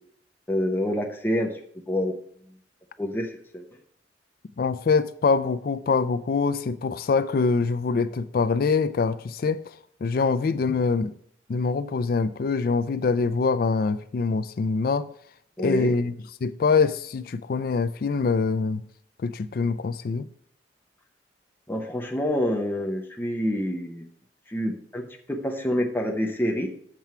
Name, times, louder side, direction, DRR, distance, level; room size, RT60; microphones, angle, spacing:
voice 1, 0.5-1.5 1.9-2.1 3.0-3.6 15.6-15.9 21.7-24.1 24.5-26.7, equal, 10° left, 0.7 m, -27 dB
voice 2, 4.6-9.7 10.0-11.1 11.5-15.1 15.6-16.1 16.4-18.8 19.2-20.3, left 4 dB, 50° left, 0.4 m, -24 dB
7.5 x 4.5 x 5.7 m
head